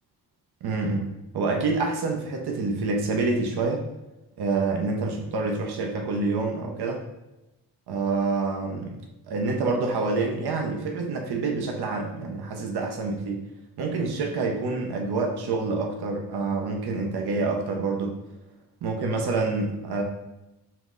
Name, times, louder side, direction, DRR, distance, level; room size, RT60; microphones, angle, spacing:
voice 1, 0.6-1.1 1.3-3.8 4.4-7.0 7.9-9.0 9.3-13.5 13.8-18.2 18.8-20.0, right 3 dB, 70° right, 2 dB, 0.8 m, -27 dB
5.7 x 2.0 x 3.7 m, 0.96 s
supercardioid pair, 50°, 41 cm